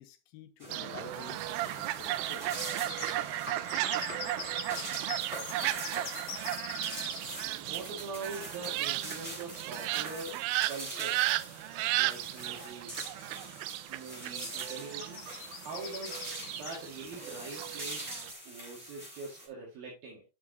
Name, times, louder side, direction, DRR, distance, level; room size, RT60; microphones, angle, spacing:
voice 1, 0.0-1.4 1.7-2.7, left 9 dB, 75° left, 2.8 m, -49 dB
sound 1, 0.6-19.5, equal, 10° right, 3.1 m, -45 dB
Fowl, 0.7-18.3, right 17 dB, 85° right, 2.1 m, -35 dB
sound 2, 2.8-7.4 9.9-10.0 10.3-10.4 11.7-11.8 12.1-12.6 13.1-13.3 14.4-17.2, left 6 dB, 55° left, 1.9 m, -43 dB
voice 2, 7.6-10.4 10.7-11.2 12.0-13.2 13.9-15.2 15.6-16.2 16.5-18.1 18.5-20.2, right 3 dB, 70° right, 4.0 m, -43 dB
11.0 x 6.2 x 2.9 m
omnidirectional pair, 4.6 m